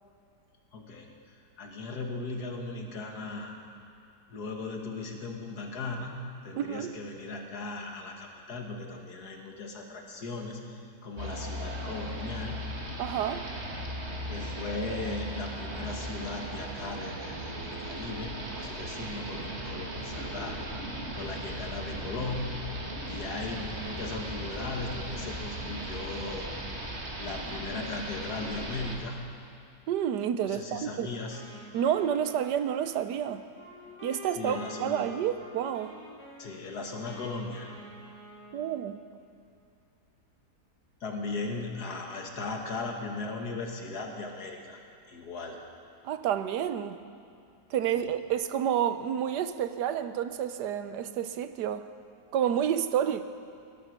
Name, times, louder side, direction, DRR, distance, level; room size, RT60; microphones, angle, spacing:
voice 1, 0.7-3.6 4.3-12.6 14.3-20.6 21.1-22.5 23.1-26.5 27.2-29.2 30.4-31.4 34.4-35.0 36.4-37.7 41.0-44.8 45.1-45.6 47.9-48.1, left 3 dB, 70° left, 2 dB, 2.1 m, -37 dB
voice 2, 6.6-6.9 13.0-13.5 29.9-31.1 31.7-33.4 34.0-35.9 38.5-39.0 46.0-47.0 47.7-51.8 52.3-53.2, right 9 dB, 85° right, 11 dB, 1.3 m, -29 dB
sound 1, 11.2-28.9, right 1 dB, 40° right, 2.0 m, -37 dB
Wind instrument woodwind instrument, 31.3-39.2, left 1 dB, 5° left, 4.1 m, -48 dB
18.0 x 11.5 x 6.2 m, 2.6 s
omnidirectional pair, 1.8 m